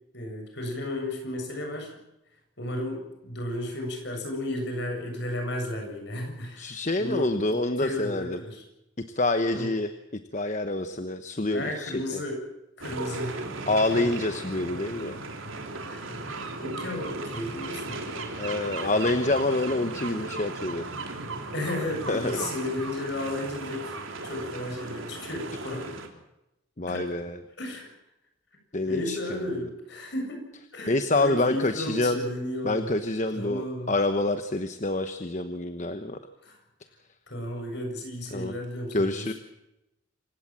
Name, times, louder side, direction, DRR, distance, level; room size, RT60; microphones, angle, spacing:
voice 1, 0.1-1.9 2.6-8.6 9.5-9.7 11.5-12.4 12.8-13.4 13.9-14.1 15.8-18.3 21.5-23.9 24.2-26.0 26.9-27.1 27.6-27.9 28.9-30.4 30.7-32.9 33.3-33.9 36.4-36.5 37.3-39.4, left 1 dB, 55° left, 3 dB, 7.5 m, -34 dB
voice 2, 6.6-8.4 9.1-12.2 13.7-15.2 18.4-20.9 22.1-22.5 26.8-27.4 28.7-29.6 30.9-32.2 32.6-36.2 38.3-38.5 38.9-39.3, left 2 dB, 35° left, 9 dB, 1.1 m, -27 dB
sound 1, 12.8-26.1, right 3 dB, 80° right, 3.4 m, -36 dB
27.0 x 16.5 x 7.6 m, 0.91 s
head